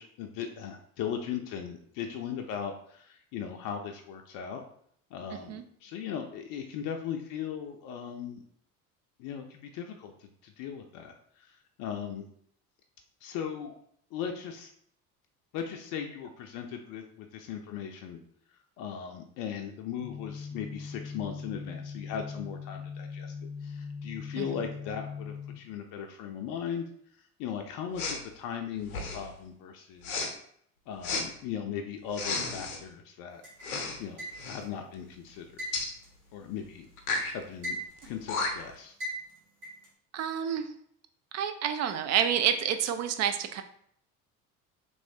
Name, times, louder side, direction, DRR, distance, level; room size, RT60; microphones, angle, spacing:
voice 1, 0.0-4.6 5.1-8.4 9.2-12.2 13.2-13.8 14.1-14.7 15.5-18.2 18.8-23.3 23.6-26.8 27.2-30.3 30.9-33.4 34.0-35.5 36.3-36.9 37.3-37.8 38.1-39.0, left 8 dB, 50° left, 4 dB, 0.5 m, -38 dB
sound 1, 20.0-25.5, left 5 dB, 15° right, 0.9 m, -40 dB
Respiratory sounds, 28.0-28.2 28.9-29.3 30.0-30.3 31.0-31.3 32.1-32.8 33.6-34.0 34.3-34.6 35.7-35.9 37.0-37.3 38.0-38.1 38.3-38.8, left 3 dB, 85° left, 0.7 m, -32 dB
sound 2, 33.4-34.7 35.6-37.0 37.3-38.2 39.0-39.9, equal, 85° right, 1.3 m, -39 dB
voice 2, 40.1-40.7 41.3-43.6, right 9 dB, 40° right, 7 dB, 0.5 m, -28 dB
3.1 x 3.0 x 2.7 m, 0.65 s
hypercardioid pair, 65°, 43 cm